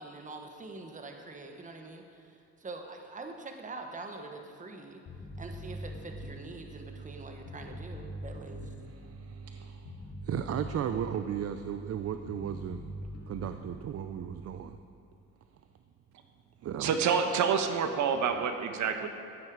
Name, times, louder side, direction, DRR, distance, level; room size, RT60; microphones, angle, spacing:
voice 1, 0.0-5.0 5.4-8.7, right 3 dB, 25° right, 4 dB, 1.3 m, -44 dB
Bass guitar, 5.1-14.7, right 1 dB, 60° left, 2.2 m, -43 dB
voice 2, 8.9-9.9 10.2-12.8 13.3-14.8 16.6-16.9, right 9 dB, 55° right, 9 dB, 0.6 m, -35 dB
voice 3, 16.8-19.1, right 6 dB, 70° right, 6 dB, 1.2 m, -27 dB
14.5 x 9.7 x 4.8 m, 2.7 s
cardioid pair, 90°, 30 cm